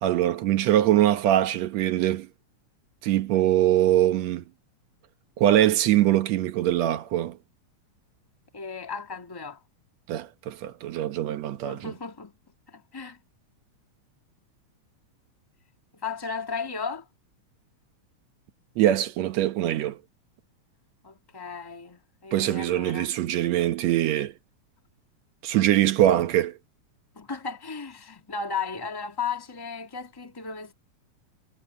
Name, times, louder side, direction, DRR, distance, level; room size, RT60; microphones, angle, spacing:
voice 1, 0.0-2.3 3.0-4.4 5.4-7.4 10.1-11.9 18.8-20.0 22.3-24.3 25.4-26.5, right 13 dB, 70° right, 2.1 m, -23 dB
voice 2, 8.5-9.6 11.7-12.3 12.7-13.2 15.9-17.1 21.0-23.1 27.1-30.7, left 5 dB, 10° left, 1.5 m, -35 dB
omnidirectional pair, 3.4 m